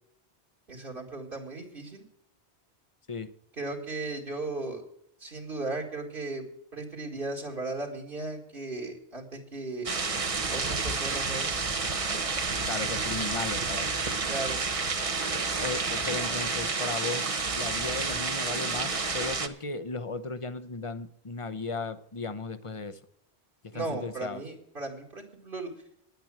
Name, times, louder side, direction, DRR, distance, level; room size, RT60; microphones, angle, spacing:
voice 1, 0.7-2.0 3.6-4.8 5.2-6.5 6.7-9.9 10.5-11.5 14.3-14.6 23.7-25.7, right 2 dB, 55° right, 0 dB, 2.3 m, -36 dB
sound 1, 9.8-19.5, right 4 dB, 35° right, 0.9 m, -30 dB
voice 2, 12.7-13.9 15.6-23.0 23.6-24.4, left 3 dB, 35° left, 11 dB, 0.7 m, -36 dB
10.0 x 9.1 x 7.5 m, 0.72 s
omnidirectional pair, 1.1 m